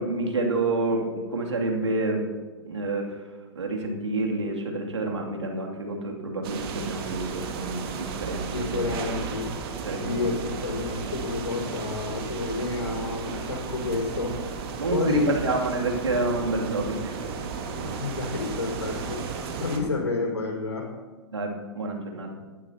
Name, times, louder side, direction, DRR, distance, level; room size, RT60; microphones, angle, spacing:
voice 1, 0.0-2.3 2.6-3.2 3.6-9.0 9.8-10.3 14.8-17.2 21.3-22.3, right 2 dB, 90° right, 0 dB, 2.6 m, -28 dB
sound 1, 6.4-19.8, right 5 dB, 60° right, 2.2 m, -34 dB
voice 2, 8.5-9.6 9.9-14.4 14.9-15.3 17.8-20.9, left 3 dB, 90° left, -1 dB, 4.8 m, -30 dB
18.5 x 12.0 x 2.9 m, 1.3 s
hypercardioid pair, 110°, 14 cm